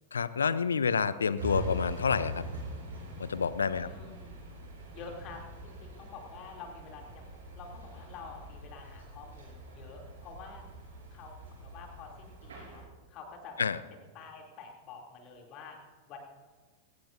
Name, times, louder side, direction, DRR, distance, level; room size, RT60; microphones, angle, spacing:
voice 1, 0.1-2.4 3.2-3.9 13.6-13.8, left 6 dB, 70° left, 16 dB, 0.6 m, -28 dB
train pass by, 1.4-12.8, equal, 65° right, 5.7 m, -43 dB
voice 2, 3.7-4.5 4.9-7.3 7.5-10.6 11.1-13.6 14.1-15.8 16.1-16.2, left 5 dB, 40° left, 1 dB, 2.9 m, -48 dB
20.0 x 18.0 x 2.7 m, 1.4 s
figure-of-eight pair, 90°, 0 cm